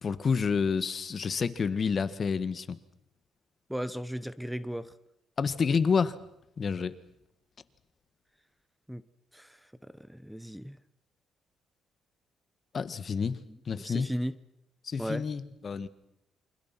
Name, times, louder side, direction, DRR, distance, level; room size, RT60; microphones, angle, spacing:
voice 1, 0.0-2.8 5.4-6.1 6.6-6.9 12.7-13.4 13.7-14.1 14.8-15.9, left 5 dB, 45° left, 13 dB, 1.7 m, -29 dB
voice 2, 3.7-4.9 8.9-9.0 9.3-10.8 13.8-14.4 15.0-15.3, equal, ahead, 15 dB, 1.1 m, -36 dB
29.0 x 25.0 x 6.0 m, 0.82 s
cardioid pair, 90°, 0 cm